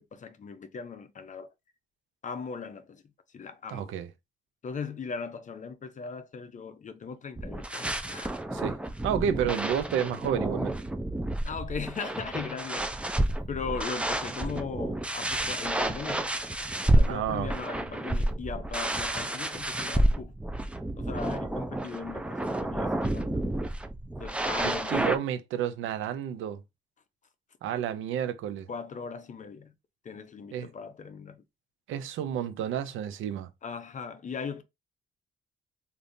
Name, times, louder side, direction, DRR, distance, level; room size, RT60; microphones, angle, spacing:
voice 1, 0.0-1.5 2.2-3.0 3.3-3.9 4.6-8.4 11.4-13.1 13.5-16.3 16.9-20.4 21.0-23.4 24.2-25.3 28.7-29.7 30.0-31.4 33.6-34.6, left 5 dB, 40° left, 0.6 m, -39 dB
voice 2, 3.7-4.1 8.5-8.8 9.0-10.8 17.1-17.5 24.6-26.6 27.6-28.7 30.5-30.7 31.9-33.5, right 9 dB, 85° right, 0.6 m, -30 dB
sound 1, 7.4-25.2, right 1 dB, 5° right, 0.4 m, -30 dB
3.4 x 2.6 x 2.6 m
cardioid pair, 90°, 20 cm